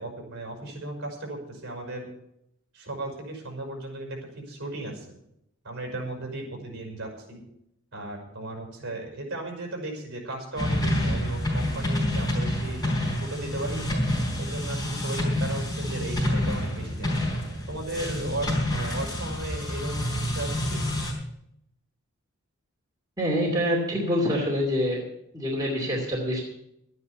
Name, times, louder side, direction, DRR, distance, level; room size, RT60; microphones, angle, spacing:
voice 1, 0.0-2.1 2.7-5.2 5.6-7.4 7.9-13.9 14.4-17.1 17.7-20.9, right 2 dB, 55° right, 2 dB, 5.7 m, -36 dB
sound 1, 10.6-21.1, left 1 dB, 20° left, 4.9 m, -28 dB
voice 2, 23.2-25.1 25.3-26.4, equal, 20° right, -3 dB, 2.7 m, -26 dB
13.0 x 9.7 x 7.2 m, 0.76 s
head